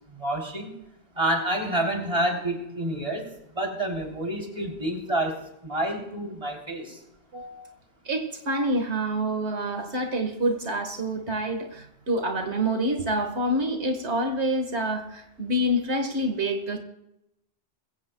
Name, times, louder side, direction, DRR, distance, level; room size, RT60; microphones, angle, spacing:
voice 1, 0.1-0.8 1.2-3.3 3.6-7.0, right 1 dB, 30° right, 1 dB, 3.3 m, -28 dB
voice 2, 7.3-7.7 8.1-16.8, right 1 dB, 85° right, 4 dB, 1.8 m, -27 dB
22.0 x 16.5 x 2.2 m, 0.84 s
omnidirectional pair, 1.1 m